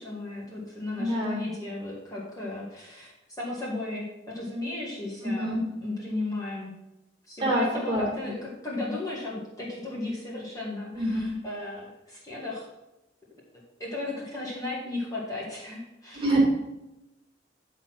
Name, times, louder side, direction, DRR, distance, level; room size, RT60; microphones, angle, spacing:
voice 1, 0.0-3.1 3.4-6.7 7.3-12.7 13.8-16.2, left 2 dB, 20° left, -6 dB, 2.1 m, -35 dB
voice 2, 1.0-1.4 5.2-5.6 7.4-8.1 10.9-11.2 16.1-16.4, right 1 dB, 25° right, -4 dB, 2.5 m, -26 dB
9.5 x 4.3 x 6.1 m, 0.94 s
head